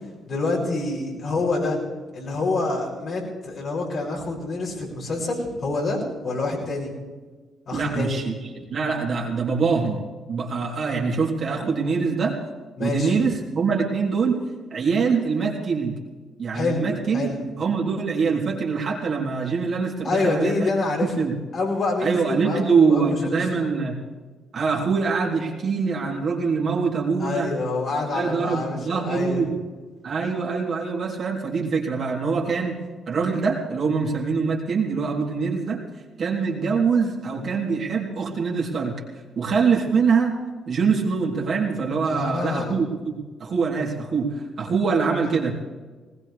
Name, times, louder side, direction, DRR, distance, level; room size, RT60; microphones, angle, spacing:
voice 1, 0.3-1.8 2.1-6.9 7.7-8.2 12.8-13.2 16.5-17.4 20.0-21.1 21.5-23.7 27.2-29.4 42.0-42.8, left 3 dB, 55° left, -3 dB, 6.4 m, -27 dB
voice 2, 7.7-8.3 8.7-10.0 10.3-12.4 12.8-14.4 14.7-16.0 16.4-17.3 17.6-20.7 21.2-21.4 22.0-24.0 24.5-27.5 28.1-29.5 30.0-32.8 33.1-35.8 36.2-38.9 39.4-40.4 40.7-45.7, right 5 dB, 50° right, -2 dB, 3.4 m, -24 dB
19.5 x 19.5 x 3.4 m, 1.4 s
hypercardioid pair, 45°, 0 cm